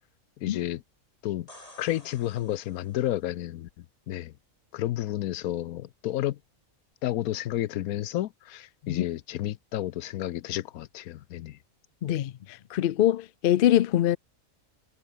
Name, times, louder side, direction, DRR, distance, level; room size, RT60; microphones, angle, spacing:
voice 1, 0.4-0.8 1.2-1.5 1.8-4.3 4.7-6.4 7.0-11.6, left 14 dB, 85° left, 1.1 m, -31 dB
sound 1, 1.3-3.2 6.9-7.0, left 1 dB, 25° left, 4.0 m, -52 dB
voice 2, 12.0-12.3 12.7-14.2, left 12 dB, 65° left, 0.5 m, -23 dB
omnidirectional pair, 1.5 m